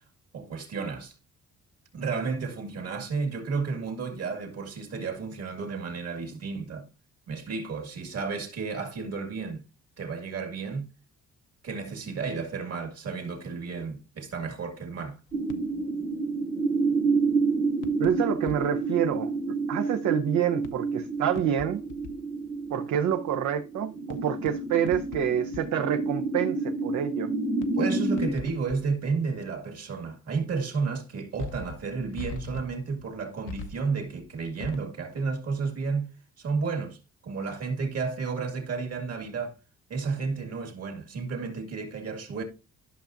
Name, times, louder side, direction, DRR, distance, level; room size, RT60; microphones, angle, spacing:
voice 1, 0.3-1.1 1.9-6.9 7.3-9.6 10.0-10.9 11.6-15.2 27.8-36.1 36.4-37.0 37.2-39.5 39.9-42.4, right 4 dB, 55° right, 2.2 m, -32 dB
sound 1, 15.3-16.0 17.8-18.8 19.1-19.2 20.6-22.2 22.7-22.8 24.1-25.8 26.1-26.2 27.6-27.8 28.2-29.1 29.3-29.4 31.3-34.8, left 5 dB, 85° left, 0.9 m, -42 dB
sound 2, 15.3-28.3, right 3 dB, 20° right, 1.0 m, -29 dB
voice 2, 18.0-21.8 22.7-27.3, right 9 dB, 70° right, 0.7 m, -27 dB
11.5 x 5.9 x 2.5 m
cardioid pair, 90°, 30 cm